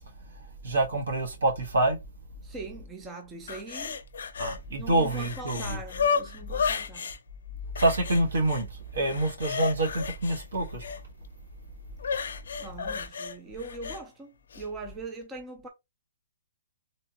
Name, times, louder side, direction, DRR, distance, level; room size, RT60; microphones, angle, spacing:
voice 1, 0.6-2.0 4.4-5.8 7.8-10.8, right 2 dB, 85° right, 1.2 m, -26 dB
voice 2, 2.4-4.0 4.7-7.1 12.6-15.7, right 3 dB, 10° right, 0.4 m, -41 dB
sound 1, 3.5-4.6 4.9-7.2 7.8-8.6 9.0-11.0 12.0-14.0 14.5-14.6, left 6 dB, 65° left, 0.5 m, -32 dB
3.4 x 2.8 x 2.8 m
hypercardioid pair, 170°, 0 cm